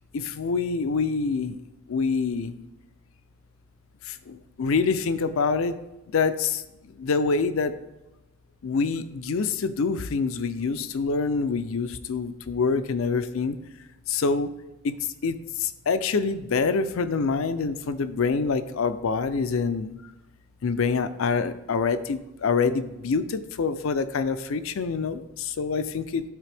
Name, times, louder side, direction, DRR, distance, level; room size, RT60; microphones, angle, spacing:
voice 1, 0.1-1.6 1.9-2.5 4.0-5.8 6.1-7.7 8.6-13.6 14.1-14.5 14.8-15.0 15.2-20.0 20.6-26.2, left 4 dB, 65° left, 12 dB, 0.4 m, -26 dB
12.0 x 4.1 x 3.4 m, 0.97 s
head